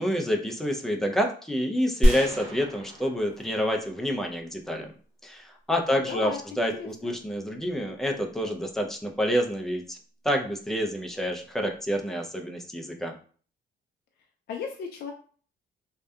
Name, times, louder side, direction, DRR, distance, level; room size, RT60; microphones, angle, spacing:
voice 1, 0.0-4.9 5.2-6.3 6.6-10.0 10.2-13.1, equal, ahead, 2 dB, 0.5 m, -28 dB
sound 1, 2.0-4.3, equal, 85° right, 0.8 m, -26 dB
voice 2, 5.9-7.1 14.5-15.1, left 5 dB, 55° left, 2 dB, 0.4 m, -36 dB
2.7 x 2.2 x 2.3 m, 0.44 s
cardioid pair, 90°, 20 cm